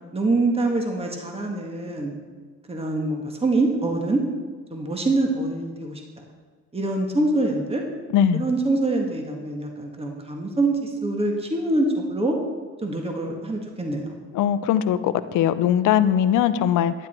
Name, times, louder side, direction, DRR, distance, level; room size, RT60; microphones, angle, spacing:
voice 1, 0.1-2.1 2.7-4.2 4.7-6.0 6.7-7.8 8.3-12.4 12.8-14.1, right 2 dB, 20° right, 2 dB, 1.8 m, -24 dB
voice 2, 8.1-8.4 14.3-16.9, left 9 dB, 85° left, 13 dB, 0.7 m, -20 dB
12.0 x 10.0 x 4.5 m, 1.5 s
cardioid pair, 90°, 30 cm